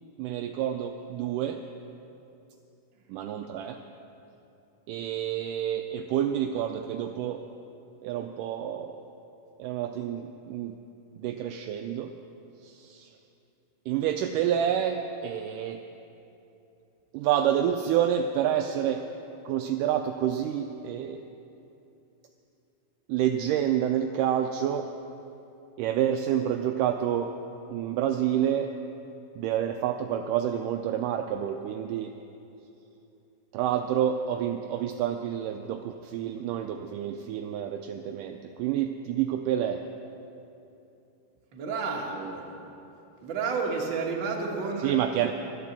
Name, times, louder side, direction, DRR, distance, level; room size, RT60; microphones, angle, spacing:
voice 1, 0.2-1.6 3.1-3.8 4.9-7.4 8.0-9.0 9.6-10.8 11.2-12.1 12.6-13.1 13.9-15.8 17.1-19.0 19.5-21.2 23.1-24.9 25.8-27.3 27.7-28.7 29.4-32.1 33.5-39.8 44.8-45.3, right 10 dB, 85° right, 5 dB, 1.8 m, -28 dB
voice 2, 41.5-42.5 43.2-44.9, right 4 dB, 45° right, -1 dB, 1.6 m, -31 dB
12.0 x 11.5 x 7.3 m, 2.8 s
omnidirectional pair, 4.3 m